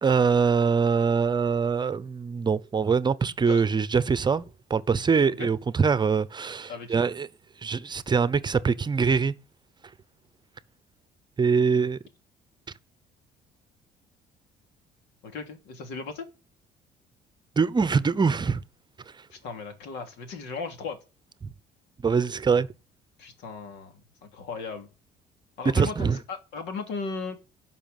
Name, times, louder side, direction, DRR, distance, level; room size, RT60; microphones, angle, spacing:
voice 1, 0.0-4.4 4.7-7.3 7.6-9.3 11.4-12.0 17.6-18.6 22.0-22.7 25.7-26.2, right 5 dB, 25° right, 0.8 m, -23 dB
voice 2, 6.7-7.0 15.2-16.3 19.3-21.0 23.2-23.9 24.2-24.9 25.6-27.4, left 4 dB, 90° left, 3.1 m, -36 dB
12.0 x 5.7 x 9.2 m
cardioid pair, 110°, 17 cm